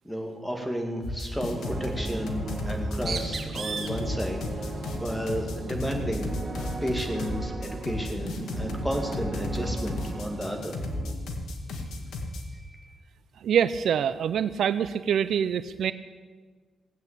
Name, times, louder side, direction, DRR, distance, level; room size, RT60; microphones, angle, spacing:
voice 1, 0.0-10.8 12.4-12.9, equal, 5° left, 3 dB, 2.2 m, -33 dB
sound 1, 1.0-12.4, left 1 dB, 80° left, 2.0 m, -33 dB
sound 2, 1.5-11.1, right 2 dB, 20° right, 1.8 m, -38 dB
Bird, 2.7-7.5, right 5 dB, 50° right, 1.5 m, -40 dB
voice 2, 13.4-15.9, right 8 dB, 75° right, 13 dB, 0.5 m, -25 dB
17.0 x 8.9 x 8.3 m, 1.4 s
cardioid pair, 115°, 0 cm